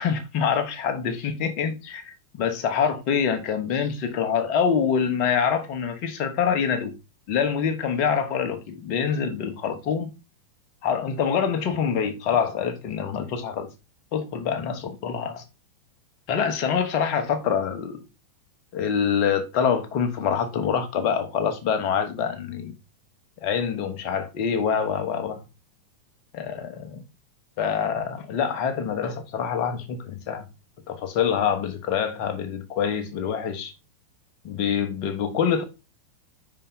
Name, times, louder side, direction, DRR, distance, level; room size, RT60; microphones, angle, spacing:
voice 1, 0.0-6.9 7.3-10.1 10.8-13.7 14.1-15.4 16.3-18.0 18.7-22.7 23.4-25.4 26.3-27.0 27.6-30.4 30.9-33.7 34.4-35.6, left 7 dB, 45° left, 1.2 m, -25 dB
5.7 x 4.5 x 3.9 m
figure-of-eight pair, 90°, 0 cm